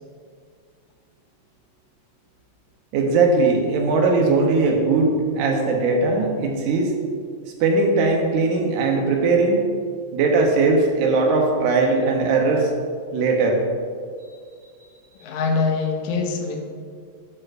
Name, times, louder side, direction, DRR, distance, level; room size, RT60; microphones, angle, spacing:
voice 1, 2.9-6.9 7.6-9.6 10.1-12.7 13.1-13.6, right 3 dB, 85° right, 2 dB, 2.3 m, -19 dB
voice 2, 15.2-16.6, left 4 dB, 90° left, 3 dB, 2.2 m, -23 dB
12.5 x 4.9 x 2.5 m, 2.1 s
omnidirectional pair, 3.4 m